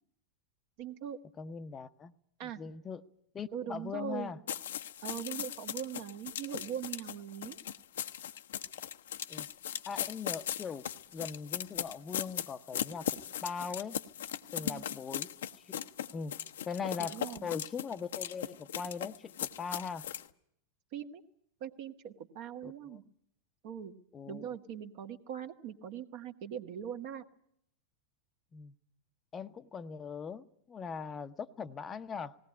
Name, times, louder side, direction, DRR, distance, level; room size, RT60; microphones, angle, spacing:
voice 1, 0.8-1.2 2.4-2.6 3.5-4.3 5.0-7.6 14.6-14.9 17.0-17.5 20.9-21.2 21.6-23.0 23.6-23.9 24.3-27.2, right 9 dB, 45° right, 7 dB, 1.4 m, -41 dB
voice 2, 1.4-2.1 2.4-3.0 3.3-4.4 9.3-9.5 9.9-13.1 13.4-14.0 14.5-15.3 15.5-15.9 16.1-16.3 16.6-20.1 22.6-23.0 24.1-24.5 28.5-28.7 29.3-32.4, left 6 dB, 20° left, 10 dB, 0.8 m, -40 dB
sound 1, 4.5-20.3, left 10 dB, 60° left, 0.8 m, -39 dB
19.5 x 17.5 x 9.6 m, 0.72 s
figure-of-eight pair, 90°, 0 cm